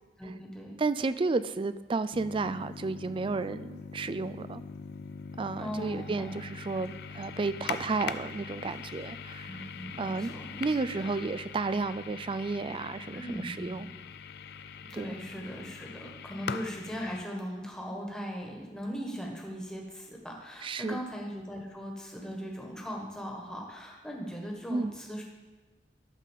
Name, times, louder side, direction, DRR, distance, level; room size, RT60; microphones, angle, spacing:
voice 1, 0.2-0.7 5.6-6.3 9.5-10.6 11.0-11.2 13.1-13.9 14.9-25.2, equal, 5° left, -1 dB, 1.5 m, -39 dB
voice 2, 0.8-4.6 5.4-9.5 10.0-10.3 10.6-13.9 14.9-15.2 20.6-21.0 24.7-24.9, right 3 dB, 30° right, 14 dB, 0.3 m, -32 dB
sound 1, 2.1-17.2, left 6 dB, 60° left, 0.4 m, -42 dB
12.0 x 4.0 x 7.4 m, 1.2 s
head